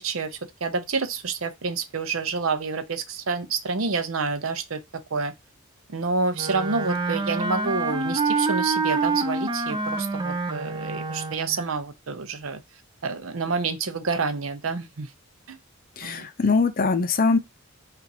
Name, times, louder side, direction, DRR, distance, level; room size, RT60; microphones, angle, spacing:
voice 1, 0.0-4.8 5.1-5.3 5.9-12.6 13.0-15.1 15.5-15.6 16.0-16.3, right 4 dB, 65° right, 0.7 m, -28 dB
Wind instrument woodwind instrument, 6.3-11.7, right 3 dB, 20° right, 0.5 m, -27 dB
voice 2, 16.0-17.4, left 4 dB, 40° left, 0.6 m, -22 dB
5.6 x 2.6 x 2.7 m
head